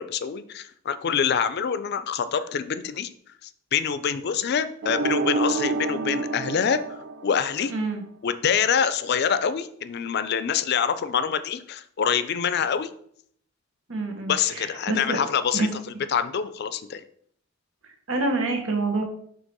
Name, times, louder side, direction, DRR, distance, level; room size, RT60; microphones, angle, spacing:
voice 1, 0.0-3.1 3.4-7.7 8.2-12.9 14.3-15.7 16.1-17.0, left 7 dB, 55° left, 13 dB, 0.4 m, -26 dB
sound 1, 4.8-7.8, right 3 dB, 60° right, 0.4 m, -28 dB
voice 2, 7.7-8.0 13.9-15.2 15.5-15.7 18.1-19.0, right 2 dB, 85° right, 3 dB, 1.2 m, -27 dB
6.3 x 2.9 x 5.3 m, 0.66 s
head